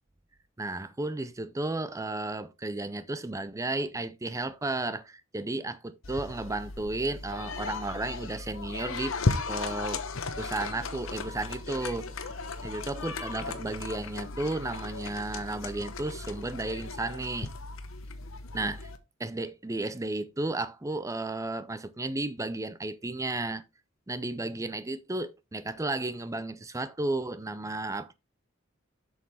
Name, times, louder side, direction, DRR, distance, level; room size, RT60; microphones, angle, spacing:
voice 1, 0.6-9.2 9.5-10.1 10.3-12.3 12.6-17.5 18.5-18.9 19.2-23.6 24.1-28.1, right 2 dB, 15° right, 0.6 m, -33 dB
sound 1, 6.0-19.0, left 3 dB, 70° left, 0.9 m, -36 dB
7.5 x 6.3 x 3.5 m
head